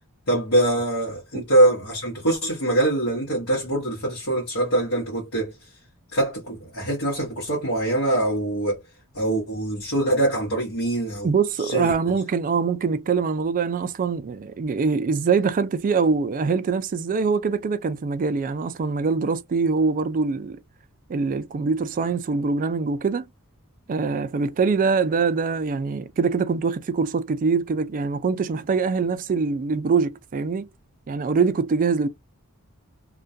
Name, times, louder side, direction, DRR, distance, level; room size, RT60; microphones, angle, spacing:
voice 1, 0.3-5.7 6.1-8.8 9.1-11.3 11.6-11.9, right 1 dB, 75° left, 1.0 m, -23 dB
voice 2, 11.2-20.6 21.1-23.3 23.9-30.7 31.1-32.1, right 5 dB, 40° right, 0.3 m, -23 dB
2.2 x 2.2 x 2.5 m
head